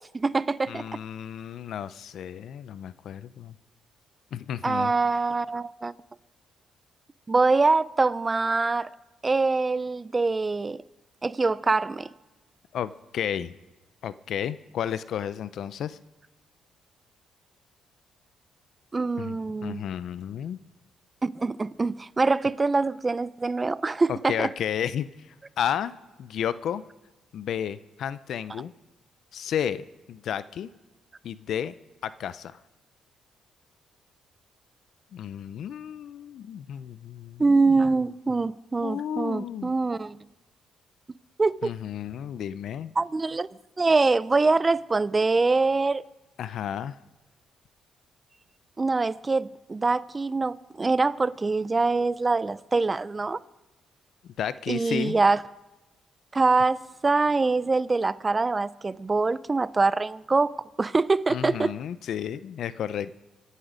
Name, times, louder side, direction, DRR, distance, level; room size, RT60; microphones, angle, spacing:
voice 1, 0.0-0.8 4.6-5.9 7.3-8.9 9.2-10.8 11.2-12.1 18.9-19.8 21.2-24.5 37.4-40.2 41.4-41.7 43.0-43.5 43.8-46.0 48.8-53.4 54.7-55.4 56.3-60.5 60.8-61.7, right 3 dB, 25° right, 0.5 m, -24 dB
voice 2, 0.7-3.5 4.3-4.9 12.7-13.5 14.0-16.0 19.2-20.6 24.1-25.9 26.2-26.8 27.3-28.7 29.3-30.7 31.2-31.7 32.0-32.6 35.1-37.4 38.8-39.7 41.6-42.9 46.4-47.0 54.2-55.2 61.3-63.1, left 9 dB, 70° left, 0.6 m, -32 dB
26.0 x 9.9 x 5.1 m
cardioid pair, 90°, 0 cm